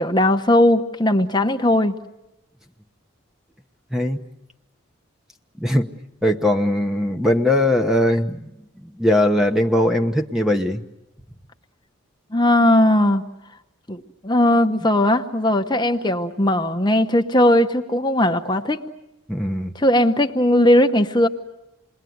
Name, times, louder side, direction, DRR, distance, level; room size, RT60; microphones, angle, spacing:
voice 1, 0.0-1.9 12.3-13.3 13.9-18.8 19.7-21.3, left 1 dB, 20° left, 6 dB, 1.0 m, -18 dB
voice 2, 3.9-4.2 5.6-5.9 6.2-8.5 8.8-10.8 19.3-19.7, left 1 dB, ahead, 5 dB, 1.0 m, -20 dB
28.0 x 21.0 x 9.4 m, 0.94 s
head